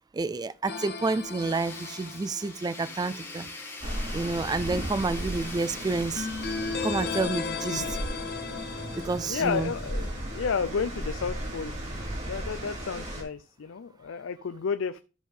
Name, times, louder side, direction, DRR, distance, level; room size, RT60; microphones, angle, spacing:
voice 1, 0.1-3.5 4.1-6.3 6.8-8.0 9.0-9.7, right 3 dB, 20° right, 0.3 m, -29 dB
sound 1, 0.7-3.0 6.2-10.6, left 5 dB, 55° left, 1.0 m, -36 dB
Tools, 1.4-7.3, left 3 dB, 15° left, 2.5 m, -42 dB
sound 2, 3.8-13.2, right 1 dB, 40° right, 3.3 m, -36 dB
voice 2, 9.0-11.7 12.2-15.0, left 6 dB, 85° left, 0.5 m, -32 dB
12.5 x 5.4 x 3.6 m
head